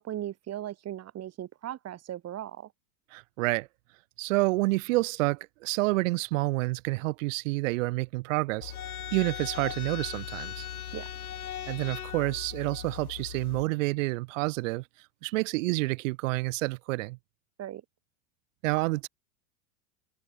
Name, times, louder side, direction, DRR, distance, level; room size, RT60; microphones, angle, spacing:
voice 1, 0.0-2.7 10.9-11.1 17.6-17.8, right 12 dB, 35° right, 6.1 m, -38 dB
voice 2, 3.1-3.7 4.2-8.7 9.1-10.6 11.7-14.8 15.2-17.2 18.6-19.1, right 23 dB, 60° right, 3.3 m, -28 dB
sound 1, 8.6-13.6, left 10 dB, 80° left, 3.1 m, -39 dB
hypercardioid pair, 95°, 43 cm